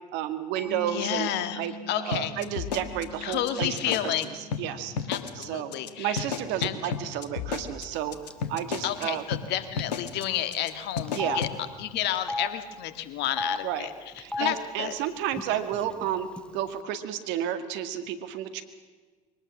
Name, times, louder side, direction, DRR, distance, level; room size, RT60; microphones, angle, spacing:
voice 1, 0.1-1.3 1.6-3.8 4.0-4.9 5.3-5.7 6.0-8.2 8.5-9.2 11.1-11.4 13.6-13.9 14.2-16.3 16.5-18.6, right 10 dB, 60° right, 9 dB, 2.0 m, -31 dB
Mallet percussion, 0.6-7.9, left 1 dB, 85° right, 4.8 m, -45 dB
voice 2, 0.9-1.6 1.9-2.3 3.2-4.3 5.1-6.3 6.6-6.9 8.8-11.5 11.8-13.9 14.4-15.0, left 11 dB, 55° left, 10 dB, 1.7 m, -30 dB
sound 1, 2.1-4.2 4.5-4.6 5.0-5.4 5.7-5.9 6.2-9.0 9.3-9.4 9.8-10.2 10.5-10.7 11.0-11.5, left 6 dB, 80° left, 1.4 m, -32 dB
Telephone, 8.3-8.5 8.7-8.9 9.8-9.9 10.2-10.3 11.1-11.4 12.1-12.5 13.2-13.6 14.2-14.5 15.3-15.4 15.7-16.4, left 2 dB, 5° left, 1.4 m, -32 dB
23.0 x 18.5 x 7.3 m, 1.4 s
hypercardioid pair, 70°, 21 cm